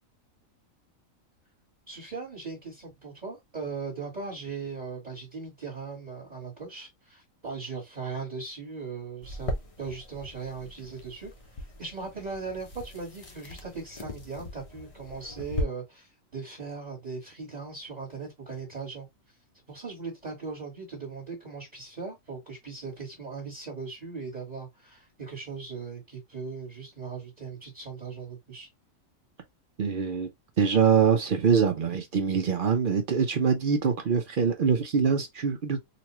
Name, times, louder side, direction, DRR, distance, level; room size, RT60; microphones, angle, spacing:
voice 1, 1.9-19.1 19.7-28.7, right 4 dB, 30° right, 1.5 m, -39 dB
sound 1, 9.2-15.6, left 1 dB, 35° left, 0.6 m, -39 dB
voice 2, 29.8-30.3 30.6-35.8, right 6 dB, 55° right, 0.6 m, -24 dB
4.0 x 2.2 x 2.9 m
omnidirectional pair, 1.4 m